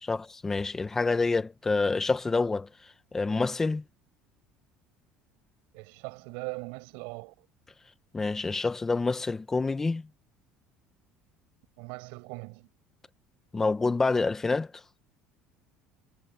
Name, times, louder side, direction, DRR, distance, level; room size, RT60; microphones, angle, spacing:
voice 1, 0.0-2.7 3.1-3.8 8.1-10.0 13.5-14.7, left 3 dB, 15° left, 1.4 m, -27 dB
voice 2, 5.7-7.5 11.8-12.7, right 32 dB, 80° right, 7.2 m, -40 dB
cardioid pair, 140°, 3 cm